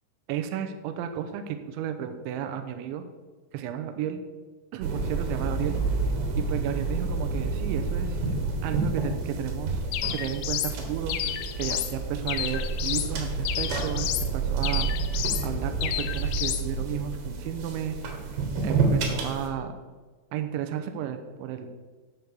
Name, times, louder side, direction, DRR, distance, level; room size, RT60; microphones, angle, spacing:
voice 1, 0.3-3.0 3.5-4.2 4.7-5.8 6.5-8.2 8.6-9.8 10.1-18.0 18.6-19.7 20.3-21.7, right 9 dB, 80° right, 8 dB, 3.1 m, -33 dB
sound 1, 4.8-19.5, right 4 dB, 65° right, 3.3 m, -29 dB
sound 2, 9.9-10.8 11.1-11.9 12.3-13.1 13.5-14.3 14.6-15.5 15.8-16.6, left 12 dB, 90° left, 3.3 m, -31 dB
12.5 x 5.3 x 6.8 m, 1.4 s
omnidirectional pair, 5.5 m